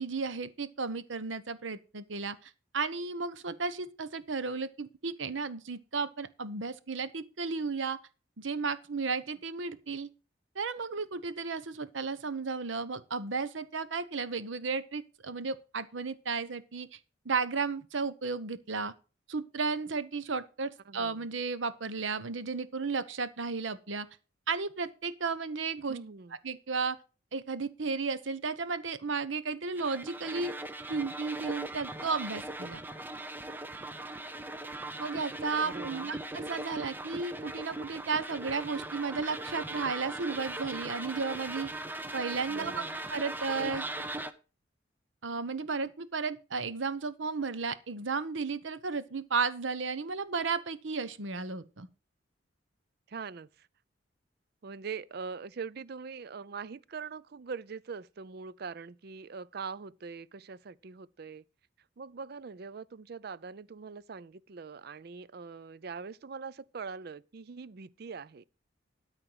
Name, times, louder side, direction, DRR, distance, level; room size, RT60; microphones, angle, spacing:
voice 1, 0.0-8.0 8.4-10.1 10.5-17.0 17.2-18.9 19.3-24.1 24.5-26.0 26.4-27.0 27.3-30.5 30.9-32.8 35.0-41.7 42.1-42.8 43.1-43.9 45.2-51.9, right 4 dB, 80° right, 0.9 m, -34 dB
voice 2, 20.9-21.3 25.9-26.4 35.6-36.1 42.5-43.0 53.1-53.7 54.6-61.4 62.0-68.4, right 5 dB, 55° right, 0.5 m, -42 dB
sound 1, 29.8-44.3, right 2 dB, 10° right, 0.6 m, -39 dB
13.0 x 4.5 x 7.8 m
head